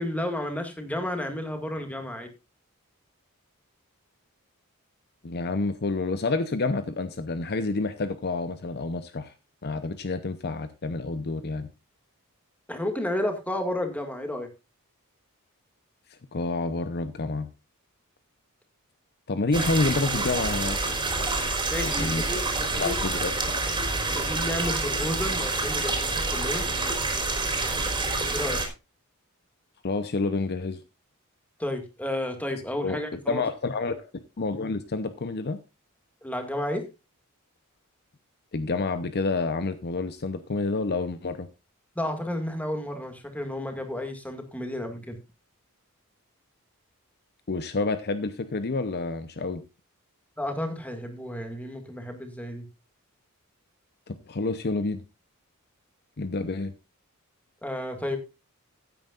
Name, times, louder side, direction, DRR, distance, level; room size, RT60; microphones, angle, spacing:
voice 1, 0.0-2.3 12.7-14.5 21.7-22.5 22.7-23.0 24.1-26.7 28.3-28.6 31.6-33.4 36.2-36.8 42.0-45.2 50.4-52.7 57.6-58.2, left 1 dB, 5° left, 5 dB, 2.0 m, -32 dB
voice 2, 5.2-9.3 9.6-11.7 16.1-17.5 19.3-20.8 21.8-22.2 22.7-23.5 29.8-30.8 32.8-34.1 34.4-35.6 38.5-41.5 47.5-49.6 54.1-55.0 56.2-56.7, left 3 dB, 45° left, 11 dB, 0.7 m, -29 dB
sound 1, 19.5-28.7, right 3 dB, 20° right, 3.5 m, -27 dB
15.5 x 9.0 x 2.5 m, 0.26 s
head